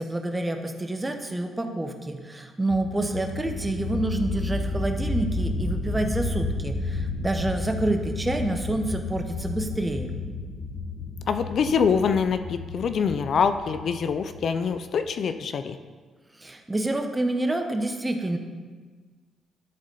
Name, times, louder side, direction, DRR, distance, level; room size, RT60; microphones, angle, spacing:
voice 1, 0.0-10.1 16.4-18.4, right 2 dB, 15° right, 5 dB, 0.8 m, -28 dB
sound 1, 2.7-15.1, left 2 dB, 40° left, 1.3 m, -32 dB
voice 2, 11.3-15.8, left 6 dB, 60° left, 9 dB, 0.4 m, -25 dB
11.5 x 4.1 x 3.9 m, 1.4 s
cardioid pair, 85°, 0 cm